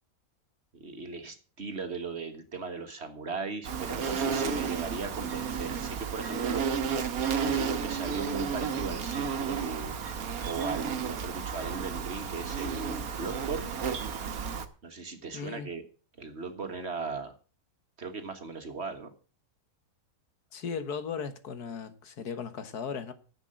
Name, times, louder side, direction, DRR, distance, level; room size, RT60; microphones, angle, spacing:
voice 1, 0.7-6.7 7.4-9.9 10.5-13.7 14.8-15.8 16.2-17.3 18.0-19.1, right 4 dB, 45° right, 1.7 m, -38 dB
Insect, 3.6-14.7, right 6 dB, 65° right, 1.6 m, -32 dB
voice 2, 15.3-15.7 20.5-23.1, left 6 dB, 75° left, 1.9 m, -37 dB
10.5 x 7.5 x 7.6 m
omnidirectional pair, 1.7 m